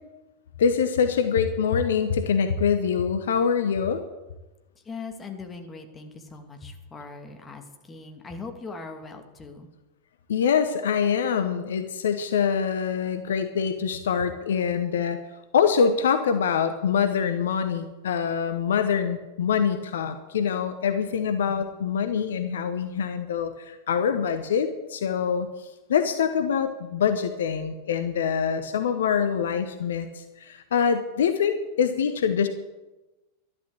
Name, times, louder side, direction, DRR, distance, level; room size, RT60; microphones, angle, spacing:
voice 1, 0.6-4.0 10.3-15.2 15.5-32.5, left 7 dB, 60° left, 9 dB, 1.0 m, -25 dB
voice 2, 4.8-9.7 21.5-21.7, left 4 dB, 15° left, 4 dB, 2.3 m, -40 dB
12.0 x 11.5 x 7.8 m, 1.1 s
figure-of-eight pair, 90°, 0 cm